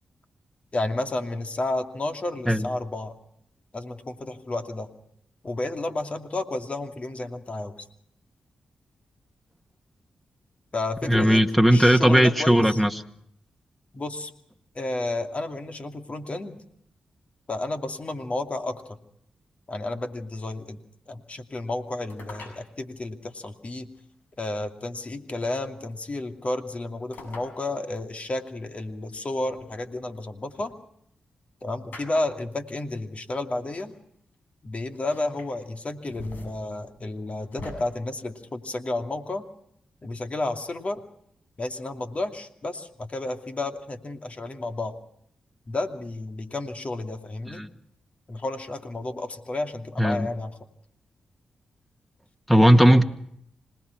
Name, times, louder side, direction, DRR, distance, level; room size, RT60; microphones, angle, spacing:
voice 1, 0.7-3.1 3.7-4.9 5.4-7.9 10.7-12.8 13.9-14.3 14.7-16.6 17.5-19.0 19.7-20.8 21.1-23.9 24.4-30.7 31.6-33.9 34.6-39.4 40.0-41.0 41.6-44.9 45.7-47.6 48.3-50.6, left 2 dB, 45° left, 5 dB, 2.7 m, -31 dB
voice 2, 11.1-12.9 47.5-47.7 50.0-50.3 52.5-53.0, equal, 5° left, 7 dB, 1.8 m, -17 dB
sound 1, 22.1-22.6 23.9-24.0 25.5-25.9 27.1-27.5 28.0-28.1 29.5-30.6 31.9-32.5 33.5-33.6 33.8-33.9 34.9-35.5 35.9-37.7, left 2 dB, 70° left, 7.2 m, -43 dB
26.0 x 19.5 x 6.0 m, 0.71 s
supercardioid pair, 45°, 3 cm